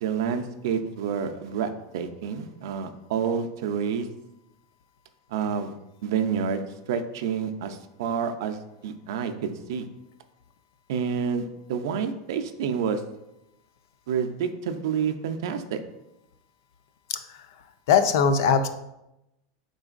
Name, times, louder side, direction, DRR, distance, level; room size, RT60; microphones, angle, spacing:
voice 1, 0.0-4.1 5.3-5.8 6.0-9.9 10.9-13.0 14.1-15.8, right 7 dB, 65° right, 7 dB, 0.4 m, -29 dB
voice 2, 17.1-17.5 17.9-18.7, left 6 dB, 60° left, 10 dB, 0.4 m, -21 dB
5.0 x 3.8 x 2.4 m, 0.88 s
supercardioid pair, 180°, 2 cm